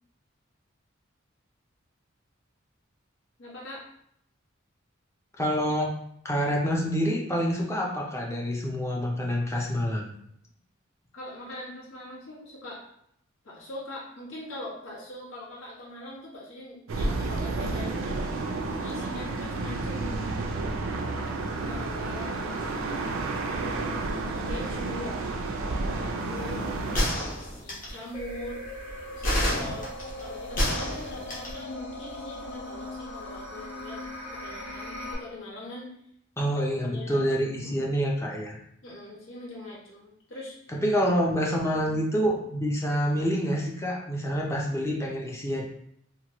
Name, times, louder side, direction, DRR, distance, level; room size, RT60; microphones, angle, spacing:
voice 1, 3.4-3.8 11.1-12.8 13.4-20.3 21.7-22.8 23.4-23.8 24.3-26.6 27.0-28.6 29.1-29.9 30.2-34.0 34.3-35.9 36.9-37.2 37.6-38.0 38.8-40.7, left 1 dB, 85° left, -6 dB, 1.1 m, -42 dB
voice 2, 5.4-5.9 6.2-10.1 36.4-38.6 40.7-45.6, equal, 15° left, -1 dB, 0.4 m, -27 dB
sound 1, 16.9-27.1, right 3 dB, 80° right, 0.4 m, -31 dB
sound 2, 26.9-28.0 29.2-31.6, equal, 40° left, 0.8 m, -28 dB
sound 3, 28.1-35.1, left 1 dB, 65° left, 1.1 m, -39 dB
2.9 x 2.2 x 2.9 m, 0.72 s
head